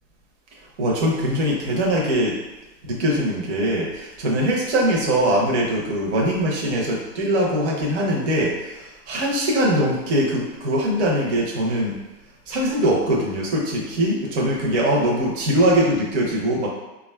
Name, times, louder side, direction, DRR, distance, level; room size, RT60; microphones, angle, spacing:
voice 1, 0.8-2.4 2.8-12.0 12.5-16.7, equal, 40° right, -3 dB, 0.8 m, -22 dB
3.7 x 2.4 x 2.2 m, 1.0 s
hypercardioid pair, 145°, 50 cm